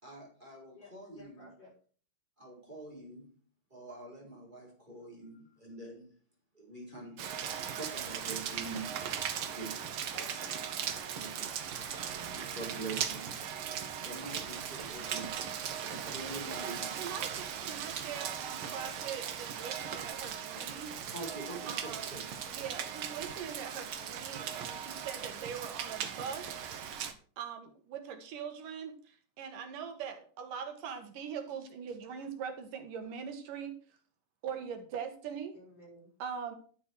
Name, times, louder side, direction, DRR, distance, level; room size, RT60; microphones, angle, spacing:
voice 1, 0.0-1.5 2.4-3.3 3.7-6.1 6.5-7.2 7.7-10.0 11.1-11.5 12.1-13.3 13.7-17.1 20.5-20.7 21.1-22.3, right 3 dB, 15° right, 4.6 m, -45 dB
voice 2, 0.7-1.7 10.1-10.5 35.5-36.1, left 1 dB, 35° left, 6.1 m, -54 dB
Rain, 7.2-27.1, right 8 dB, 60° right, 1.4 m, -38 dB
voice 3, 16.2-20.9 21.7-22.1 22.5-26.5 27.4-33.7 34.4-35.5 36.2-36.6, right 7 dB, 85° right, 3.1 m, -42 dB
11.0 x 7.3 x 4.7 m
omnidirectional pair, 3.6 m